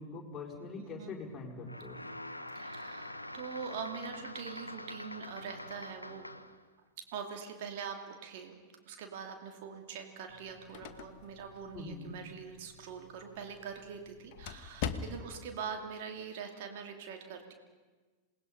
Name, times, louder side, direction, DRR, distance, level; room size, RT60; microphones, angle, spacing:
voice 1, 0.0-2.0 11.7-12.1, left 3 dB, 20° left, -3 dB, 4.9 m, -43 dB
voice 2, 0.8-1.1 2.5-6.3 7.0-8.6 8.9-17.5, right 6 dB, 50° right, 4 dB, 2.6 m, -43 dB
sound 1, 1.6-6.6, left 1 dB, 85° left, 0.8 m, -45 dB
sound 2, 10.3-15.5, left 7 dB, 50° left, 1.2 m, -44 dB
27.5 x 19.5 x 5.5 m, 1.3 s
figure-of-eight pair, 90°, 0 cm